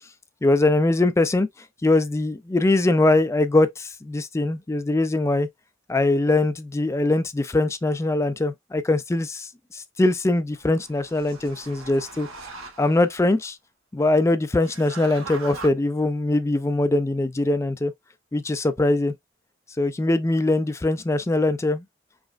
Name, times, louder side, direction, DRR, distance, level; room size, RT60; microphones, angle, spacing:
voice 1, 0.4-1.5 1.8-5.5 5.9-12.3 12.8-13.6 13.9-17.9 18.3-19.1 19.8-21.8, left 2 dB, 15° left, 0.3 m, -22 dB
sound 1, 10.5-13.2 14.5-15.7, right 3 dB, 85° right, 0.9 m, -41 dB
4.8 x 2.0 x 2.4 m
head